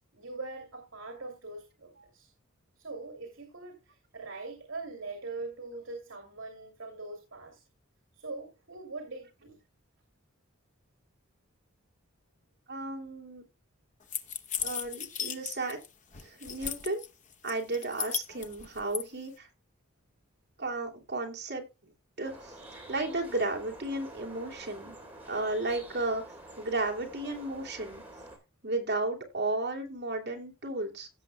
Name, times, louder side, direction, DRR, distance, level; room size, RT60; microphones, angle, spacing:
voice 1, 0.1-2.3 2.8-7.6 8.1-9.6, right 3 dB, 70° right, 3 dB, 2.6 m, -42 dB
voice 2, 12.7-13.4 14.6-15.8 16.2-17.0 17.4-19.5 20.6-21.6 22.2-22.5 22.9-25.0 25.3-26.2 26.6-28.0 28.6-31.1, right 2 dB, 50° right, 2 dB, 2.7 m, -33 dB
sound 1, 14.1-15.9 16.1-17.1 17.5-19.0, left 8 dB, 35° left, 0.8 m, -35 dB
sound 2, 22.2-28.4, right 1 dB, 10° right, 3.3 m, -48 dB
16.5 x 6.9 x 2.3 m, 0.26 s
head